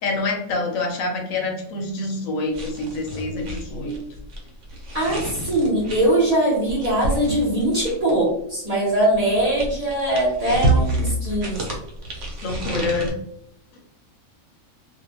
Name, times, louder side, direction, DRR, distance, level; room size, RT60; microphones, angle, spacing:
voice 1, 0.0-4.0 12.4-13.1, left 3 dB, 75° left, 1 dB, 1.1 m, -26 dB
sound 1, 2.5-8.3 9.1-13.1, right 2 dB, 65° right, 1.0 m, -28 dB
voice 2, 4.9-11.6, right 1 dB, 35° right, -6 dB, 0.9 m, -21 dB
2.6 x 2.2 x 2.8 m, 0.75 s
omnidirectional pair, 1.4 m